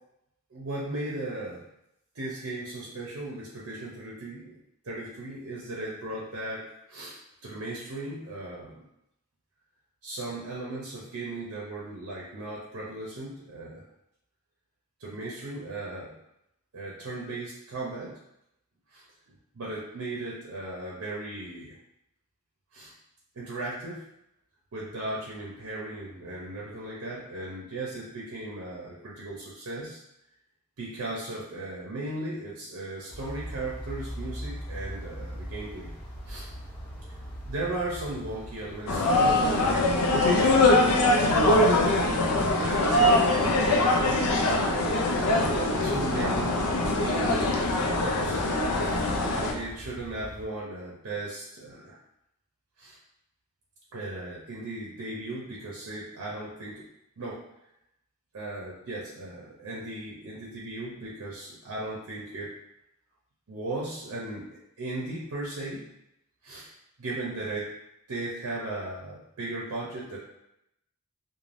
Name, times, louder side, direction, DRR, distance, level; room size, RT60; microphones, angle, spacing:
voice 1, 0.5-1.6 2.1-4.6 4.8-7.2 7.4-8.9 10.0-13.8 15.0-16.2 16.7-18.2 18.9-19.0 19.5-21.7 22.7-22.9 23.3-24.0 24.7-30.0 30.8-35.9 36.2-36.5 37.4-41.2 41.4-41.9 42.5-44.1 44.9-48.4 48.8-52.0 52.8-53.0 53.9-56.9 57.2-57.5 58.3-62.5 63.5-65.9 66.4-66.7 67.0-67.7 68.1-70.2, right 2 dB, 70° right, -5 dB, 0.6 m, -37 dB
sound 1, 33.1-50.5, equal, 45° left, 0.8 m, -42 dB
sound 2, 38.9-49.5, left 2 dB, 90° left, 0.4 m, -23 dB
3.2 x 2.2 x 2.5 m, 0.83 s
head